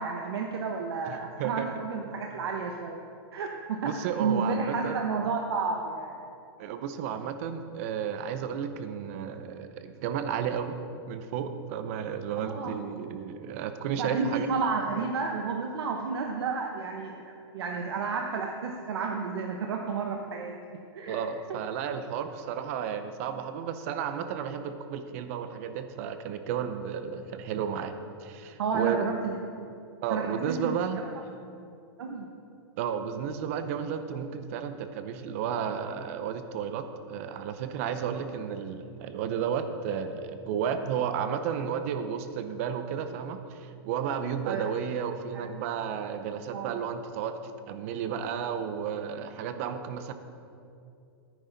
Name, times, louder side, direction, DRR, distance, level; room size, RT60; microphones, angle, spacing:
voice 1, 0.0-3.0 3.3-6.2 12.4-12.8 14.0-20.5 20.9-21.2 21.5-21.6 28.6-29.4 30.1-30.7 32.0-32.3 44.4-44.7 45.3-45.5 46.5-46.8, right 5 dB, 70° right, 2 dB, 1.0 m, -31 dB
voice 2, 1.1-1.7 3.8-5.0 6.6-10.8 11.1-14.5 21.1-27.9 28.2-29.1 30.0-31.0 32.8-50.1, right 8 dB, 35° right, 9 dB, 0.6 m, -33 dB
14.0 x 9.5 x 4.0 m, 2.6 s
supercardioid pair, 170°, 14 cm